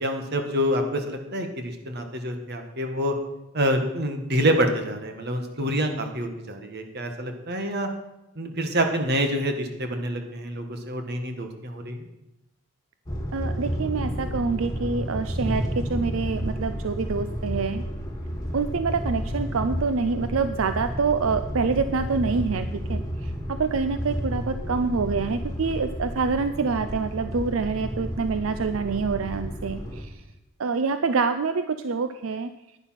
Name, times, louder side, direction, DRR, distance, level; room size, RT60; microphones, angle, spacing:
voice 1, 0.0-3.1 3.5-7.9 8.4-12.1, equal, 55° right, 5 dB, 1.6 m, -27 dB
sound 1, 13.1-30.0, equal, 15° left, 2.2 m, -31 dB
voice 2, 13.3-17.8 18.5-23.3 23.6-30.1 30.6-32.5, right 4 dB, 85° right, 10 dB, 0.5 m, -26 dB
11.0 x 9.9 x 5.8 m, 0.90 s
head